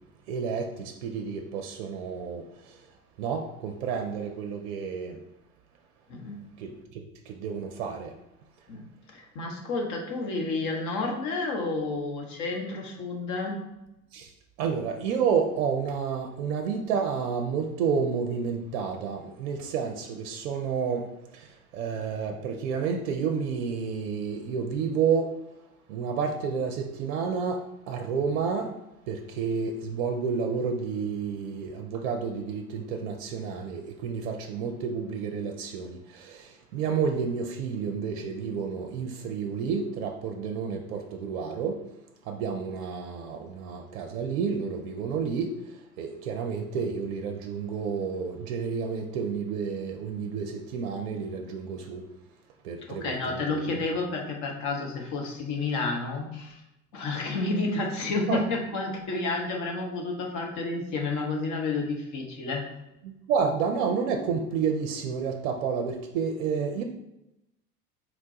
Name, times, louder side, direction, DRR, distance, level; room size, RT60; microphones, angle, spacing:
voice 1, 0.3-2.8 3.2-5.2 6.6-7.0 7.3-8.1 14.1-14.3 14.6-21.1 21.3-25.3 25.9-27.6 27.9-28.7 29.1-41.8 42.3-45.5 46.0-52.0 52.6-53.4 58.3-58.4 63.3-66.8, right 6 dB, 60° right, 3 dB, 0.5 m, -30 dB
voice 2, 6.1-6.4 8.7-8.8 9.1-13.6 52.9-56.6 56.9-62.6, left 3 dB, 40° left, 1 dB, 0.8 m, -30 dB
4.3 x 2.2 x 2.7 m, 0.91 s
figure-of-eight pair, 75°, 45 cm